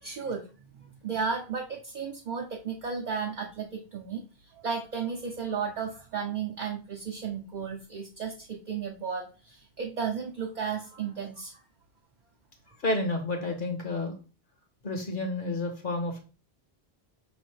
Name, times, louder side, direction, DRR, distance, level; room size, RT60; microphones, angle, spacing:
voice 1, 0.0-11.6, right 6 dB, 50° right, 1 dB, 0.7 m, -34 dB
voice 2, 12.8-14.1 14.8-16.2, left 2 dB, 55° left, 4 dB, 1.1 m, -30 dB
5.1 x 3.2 x 3.1 m, 0.34 s
omnidirectional pair, 1.1 m